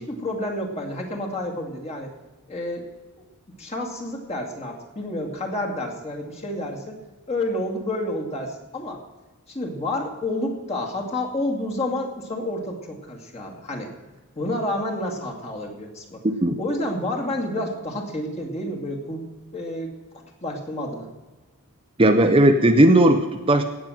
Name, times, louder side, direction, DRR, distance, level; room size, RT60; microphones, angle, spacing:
voice 1, 0.1-2.1 2.5-2.9 3.6-7.0 7.3-9.0 9.5-13.9 14.4-16.2 16.6-19.3 19.5-20.0 20.4-21.1, left 1 dB, 30° left, 0 dB, 2.3 m, -29 dB
voice 2, 22.0-23.7, right 1 dB, 25° right, 6 dB, 0.7 m, -16 dB
17.0 x 6.2 x 7.7 m, 1.2 s
head